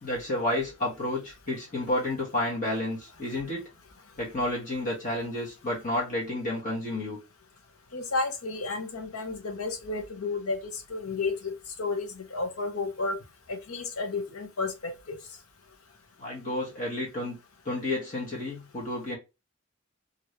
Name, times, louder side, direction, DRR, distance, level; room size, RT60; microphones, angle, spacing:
voice 1, 0.0-3.7 4.2-7.2 16.2-17.4 17.6-19.2, left 1 dB, 35° left, 1.2 m, -31 dB
voice 2, 7.9-10.6 10.9-11.5 11.8-13.2 13.5-15.1, left 3 dB, 80° left, 0.9 m, -32 dB
3.0 x 2.6 x 3.0 m
head